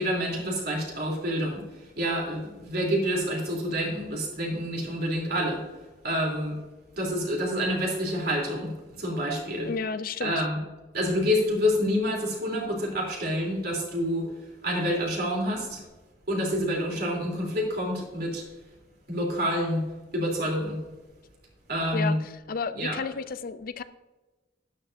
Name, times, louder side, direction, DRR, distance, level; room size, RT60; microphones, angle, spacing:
voice 1, 0.0-5.6 6.0-6.6 6.9-9.7 10.2-10.6 10.9-15.8 16.3-18.4 19.1-19.9 20.1-20.8 21.7-22.2 22.7-23.0, equal, 55° right, -2 dB, 3.3 m, -28 dB
voice 2, 9.7-10.4 21.9-22.2 22.5-23.8, left 5 dB, 50° left, 13 dB, 0.4 m, -32 dB
12.0 x 10.5 x 2.6 m, 1.2 s
head